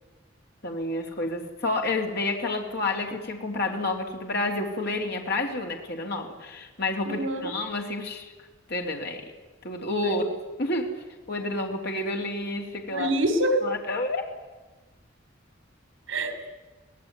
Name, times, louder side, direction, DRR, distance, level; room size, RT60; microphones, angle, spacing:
voice 1, 0.6-8.3 8.7-9.2 9.6-10.3 10.6-10.9 11.3-13.1 13.6-14.2, left 2 dB, 60° left, 2 dB, 3.2 m, -29 dB
voice 2, 7.1-7.5 10.0-10.2 12.9-13.6 16.1-16.5, right 1 dB, 75° right, 9 dB, 3.4 m, -26 dB
25.5 x 18.0 x 9.6 m, 1.2 s
head